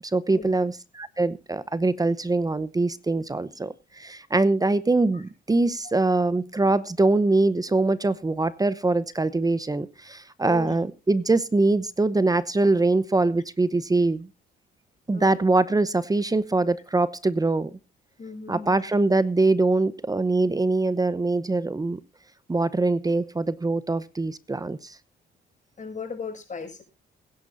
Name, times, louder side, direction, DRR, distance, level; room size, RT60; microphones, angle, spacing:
voice 1, 0.1-14.3 15.1-17.7 18.5-22.0 22.5-25.0, right 2 dB, 20° right, 16 dB, 0.9 m, -23 dB
voice 2, 18.2-18.8 25.8-26.8, left 5 dB, 40° left, 4 dB, 5.9 m, -37 dB
22.0 x 10.5 x 2.6 m, 0.28 s
cardioid pair, 90°, 20 cm